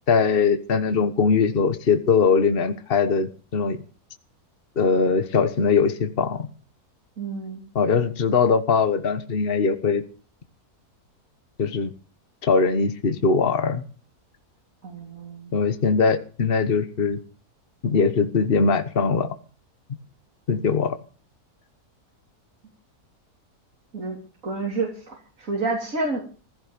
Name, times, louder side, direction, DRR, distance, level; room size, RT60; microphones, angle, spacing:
voice 1, 0.1-3.8 4.8-6.5 7.7-10.0 11.6-11.9 12.4-13.8 15.5-17.2 17.8-19.3 20.5-21.0, left 5 dB, 40° left, 1.4 m, -21 dB
voice 2, 7.2-7.6 14.8-15.5 20.6-20.8 23.9-24.2 24.4-26.2, right 3 dB, 55° right, 3.6 m, -29 dB
15.5 x 15.0 x 5.2 m
omnidirectional pair, 1.7 m